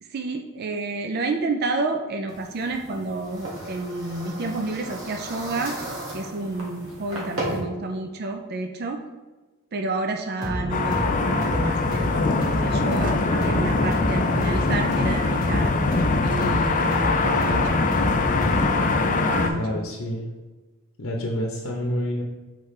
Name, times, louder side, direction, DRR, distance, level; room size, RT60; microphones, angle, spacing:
voice 1, 0.0-5.8 6.1-9.0 9.7-15.7 16.2-17.8 19.0-19.8, right 3 dB, 45° right, 4 dB, 0.4 m, -30 dB
sound 1, 2.3-7.6, right 1 dB, 70° right, 1.7 m, -35 dB
sound 2, 10.4-18.9, left 1 dB, 15° left, 1.2 m, -30 dB
sound 3, 10.7-19.5, left 3 dB, 35° left, 0.5 m, -22 dB
voice 2, 19.5-20.3 21.0-22.2, equal, 65° left, 0 dB, 0.8 m, -28 dB
6.6 x 4.5 x 3.2 m, 1.2 s
head